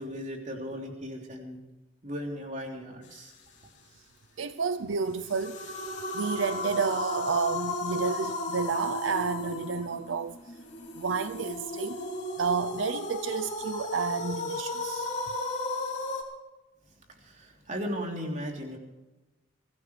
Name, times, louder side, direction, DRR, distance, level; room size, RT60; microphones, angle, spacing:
voice 1, 0.0-1.6 2.0-3.3 17.2-18.8, equal, 40° right, 3.4 m, -36 dB
voice 2, 4.4-5.8 6.1-10.4 11.0-12.1 12.4-15.1, right 5 dB, 75° right, 0.6 m, -30 dB
sound 1, 5.1-16.2, left 2 dB, 35° left, 3.3 m, -35 dB
24.0 x 15.5 x 3.3 m
head